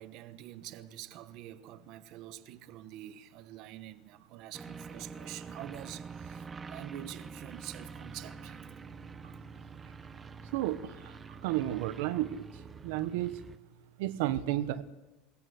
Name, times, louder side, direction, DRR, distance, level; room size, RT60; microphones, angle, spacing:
voice 1, 0.0-8.6, right 13 dB, 45° right, 1.2 m, -46 dB
sound 1, 4.5-13.6, right 5 dB, 15° right, 1.0 m, -46 dB
voice 2, 10.5-11.2 11.4-12.5 12.8-13.4 14.0-14.8, right 14 dB, 70° right, 1.2 m, -32 dB
21.5 x 20.0 x 7.9 m
cardioid pair, 165°, 0 cm